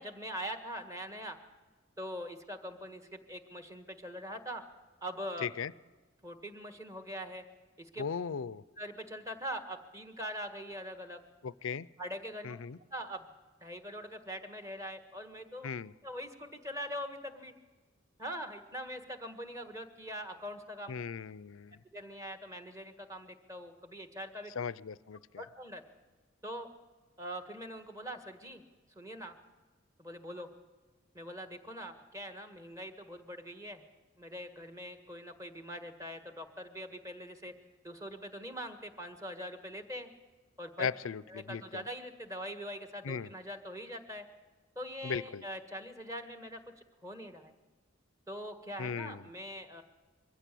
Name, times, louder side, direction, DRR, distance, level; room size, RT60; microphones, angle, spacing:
voice 1, 0.0-1.4 2.0-4.6 5.0-5.5 6.2-7.4 7.8-8.0 8.8-11.2 12.0-12.6 12.9-13.3 13.6-15.7 16.0-17.5 18.2-20.9 21.9-24.5 25.4-25.8 26.4-26.7 27.2-28.6 28.9-29.4 30.0-30.5 31.1-33.8 34.2-37.5 37.8-40.1 40.6-40.9 41.3-44.2 44.7-46.6 47.0-47.5 48.3-49.8, equal, 15° right, 7 dB, 1.7 m, -42 dB
voice 2, 5.4-5.7 8.0-8.6 11.4-11.9 12.4-12.8 15.6-15.9 20.9-21.8 24.6-25.4 40.8-41.8 43.0-43.3 45.0-45.4 48.8-49.3, left 6 dB, 90° left, 20 dB, 0.5 m, -37 dB
22.5 x 15.5 x 8.5 m, 1.3 s
head